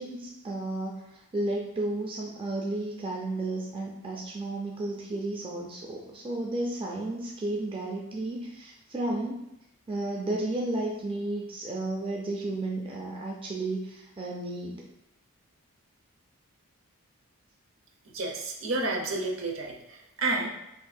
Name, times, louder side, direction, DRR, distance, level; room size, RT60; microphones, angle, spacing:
voice 1, 0.0-9.4 9.9-14.8, right 2 dB, 25° right, -2 dB, 0.4 m, -33 dB
voice 2, 18.1-19.7 20.2-20.5, right 2 dB, 65° right, 1 dB, 0.7 m, -29 dB
5.9 x 2.6 x 2.3 m, 0.85 s
head